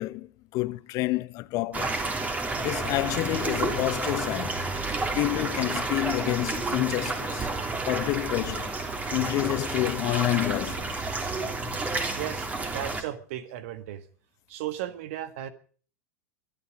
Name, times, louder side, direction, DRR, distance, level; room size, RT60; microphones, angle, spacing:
voice 1, 0.0-2.0 2.6-4.6 5.1-7.5 7.9-8.8 9.1-11.0, left 19 dB, 40° left, 1.0 m, -28 dB
sound 1, 1.7-13.0, right 3 dB, 15° right, 3.1 m, -30 dB
voice 2, 12.2-14.0 14.5-15.5, right 12 dB, 55° right, 1.7 m, -35 dB
22.0 x 12.0 x 5.0 m
figure-of-eight pair, 90°, 9 cm